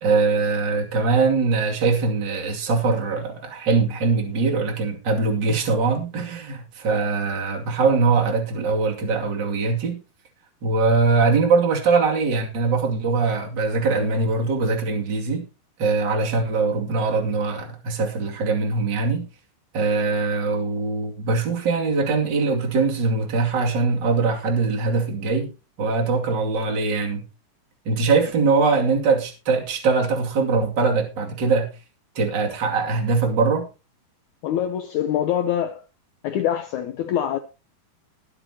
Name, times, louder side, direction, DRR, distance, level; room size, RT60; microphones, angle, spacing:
voice 1, 0.0-10.0 10.6-15.4 15.8-19.3 19.7-25.5 25.8-27.2 27.8-31.7 32.1-33.7, right 4 dB, 35° right, 2.6 m, -22 dB
voice 2, 34.4-35.8 36.2-37.4, left 10 dB, 90° left, 1.7 m, -24 dB
20.5 x 7.6 x 2.9 m
omnidirectional pair, 4.4 m